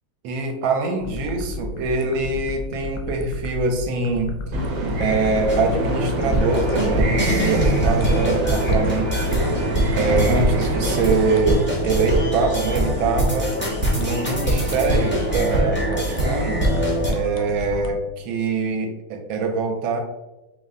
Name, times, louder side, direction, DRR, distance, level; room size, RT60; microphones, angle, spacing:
voice 1, 0.2-4.4 4.8-9.5 10.0-13.5 14.0-16.7 17.1-20.0, right 3 dB, 75° right, 3 dB, 1.3 m, -24 dB
sound 1, 1.0-17.9, left 1 dB, 80° left, 1.4 m, -33 dB
sound 2, 4.5-11.4, right 1 dB, 60° right, 1.1 m, -26 dB
sound 3, 5.5-17.1, right 1 dB, 15° left, 0.4 m, -23 dB
5.1 x 2.1 x 3.6 m, 1.0 s
omnidirectional pair, 2.3 m